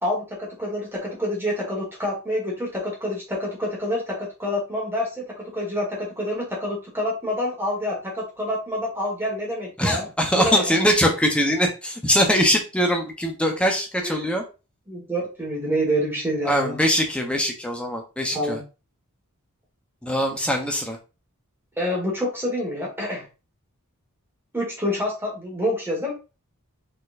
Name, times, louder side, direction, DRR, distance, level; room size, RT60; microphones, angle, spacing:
voice 1, 0.0-10.0 10.4-10.8 14.0-14.3 14.9-16.8 18.3-18.6 21.8-23.2 24.5-26.1, equal, 10° right, -3 dB, 1.6 m, -27 dB
voice 2, 9.8-14.4 16.4-18.6 20.0-21.0, equal, 5° left, 2 dB, 0.8 m, -22 dB
4.4 x 4.2 x 2.6 m, 0.31 s
head